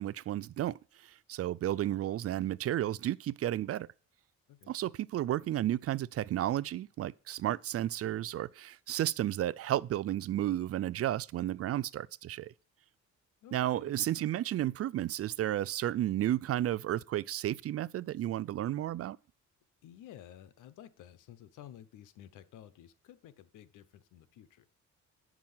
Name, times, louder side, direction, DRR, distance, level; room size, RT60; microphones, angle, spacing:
voice 1, 0.0-3.9 4.7-12.5 13.5-19.2, right 12 dB, 50° right, 0.4 m, -32 dB
voice 2, 13.4-13.9 19.8-24.7, left 11 dB, 85° left, 0.9 m, -53 dB
8.4 x 6.1 x 7.2 m
cardioid pair, 90°, 30 cm